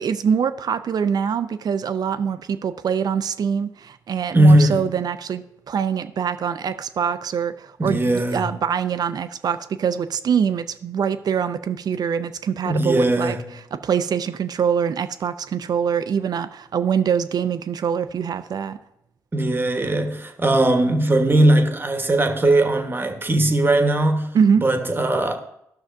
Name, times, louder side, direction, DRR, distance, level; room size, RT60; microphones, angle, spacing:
voice 1, 0.0-13.4 13.8-18.8 24.3-24.6, right 7 dB, 50° right, 0.5 m, -24 dB
voice 2, 4.3-4.9 7.8-8.5 12.6-13.5 19.3-24.3 24.6-25.4, right 1 dB, 25° right, 1.2 m, -19 dB
13.5 x 6.1 x 2.6 m
hypercardioid pair, 45°, 9 cm